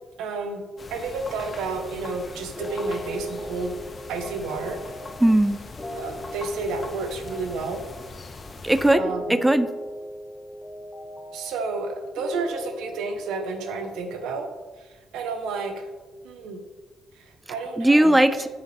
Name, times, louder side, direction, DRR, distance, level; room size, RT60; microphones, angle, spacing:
voice 1, 0.2-0.6 0.9-3.7 4.1-4.8 6.0-7.8 9.0-9.2 11.3-14.5 14.8-15.9 16.2-16.6 17.1-18.4, right 4 dB, 90° right, 6 dB, 0.9 m, -31 dB
sound 1, 0.8-8.9, left 3 dB, 35° left, 0.7 m, -41 dB
sound 2, 2.6-14.0, equal, 20° left, 1.4 m, -38 dB
voice 2, 5.2-5.6 8.6-9.7 17.8-18.5, right 1 dB, 10° right, 12 dB, 0.3 m, -18 dB
7.9 x 5.7 x 3.3 m, 1.2 s
cardioid pair, 90°, 0 cm